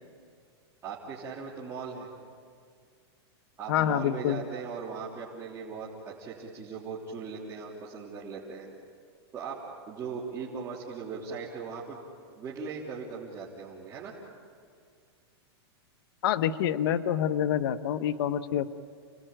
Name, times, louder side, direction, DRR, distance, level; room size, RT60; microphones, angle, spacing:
voice 1, 0.8-2.1 3.6-8.7 9.3-9.6 9.9-12.0 12.4-14.1, right 5 dB, 20° right, -7 dB, 3.5 m, -39 dB
voice 2, 3.7-4.4 16.2-18.7, left 10 dB, 60° left, 9 dB, 1.0 m, -27 dB
29.5 x 20.0 x 9.1 m, 2.2 s
supercardioid pair, 155°, 14 cm